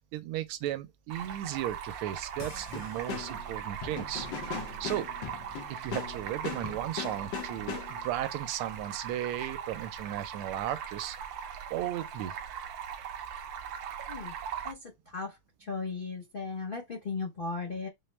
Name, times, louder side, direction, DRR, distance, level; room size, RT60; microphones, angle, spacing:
voice 1, 0.1-4.3 4.8-5.1 5.7-11.2 11.7-12.4, right 12 dB, 90° right, 1.5 m, -35 dB
Stream, 1.1-14.7, right 8 dB, 75° right, 1.2 m, -40 dB
sound 1, 2.4-8.2, left 8 dB, 70° left, 1.3 m, -40 dB
voice 2, 14.6-17.9, left 4 dB, 85° left, 0.4 m, -37 dB
4.5 x 2.0 x 3.2 m
omnidirectional pair, 2.3 m